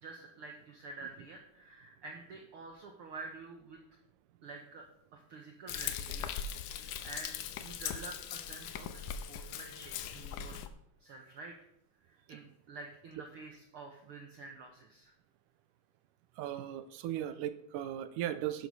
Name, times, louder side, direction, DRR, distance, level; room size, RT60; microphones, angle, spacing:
voice 1, 0.0-3.8 4.4-4.8 5.1-10.6 11.0-11.5 12.1-15.1, right 3 dB, 60° right, 2 dB, 1.5 m, -49 dB
Frying (food), 5.7-10.7, left 8 dB, 80° left, 2.2 m, -40 dB
voice 2, 16.4-18.7, right 11 dB, 85° right, 12 dB, 2.2 m, -37 dB
11.0 x 8.0 x 5.4 m, 0.75 s
omnidirectional pair, 3.7 m